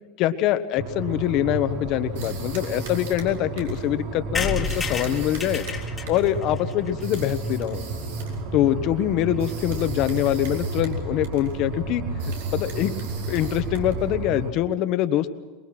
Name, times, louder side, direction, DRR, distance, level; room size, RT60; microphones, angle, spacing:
voice 1, 0.2-5.6 6.1-7.8 8.5-12.0 12.5-12.9 13.2-15.3, left 12 dB, 45° left, 11 dB, 1.2 m, -24 dB
sound 1, 0.8-14.5, right 3 dB, 65° right, 3.5 m, -32 dB
sound 2, 2.1-3.9 4.6-6.4 7.0-8.4 9.4-11.0 11.2-11.6 12.2-14.1, right 5 dB, 90° right, 4.5 m, -43 dB
sound 3, 4.3-8.0 8.5-8.6 8.7-8.8 9.1-9.2 9.4-9.6, left 5 dB, 15° left, 1.9 m, -32 dB
24.0 x 21.5 x 6.1 m, 1.3 s
supercardioid pair, 155°, 0 cm